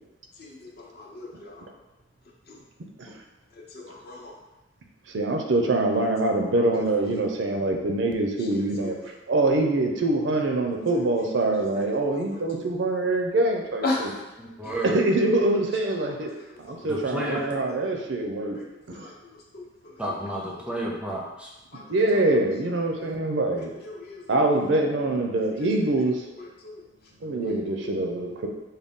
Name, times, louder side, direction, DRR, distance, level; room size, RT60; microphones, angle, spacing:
voice 1, 0.3-1.7 2.5-2.6 3.5-4.4 5.9-6.1 6.4-7.3 8.4-9.1 10.5-12.7 13.8-14.3 14.6-14.7 15.7-17.0 17.4-17.8 18.4-20.0 20.7-21.0 21.7-22.3 23.0-23.2 23.5-24.7 25.4-25.7 26.2-26.9 27.4-27.9, left 2 dB, 55° left, -1 dB, 0.6 m, -39 dB
voice 2, 5.1-9.0 9.3-13.8 14.8-16.3 16.6-18.6 21.9-23.7 24.3-26.1 27.2-28.5, right 2 dB, 70° right, 2 dB, 0.5 m, -24 dB
voice 3, 14.4-15.0 16.8-17.5 20.0-21.5, equal, 5° right, -3 dB, 0.5 m, -31 dB
3.8 x 2.2 x 3.6 m, 1.0 s
head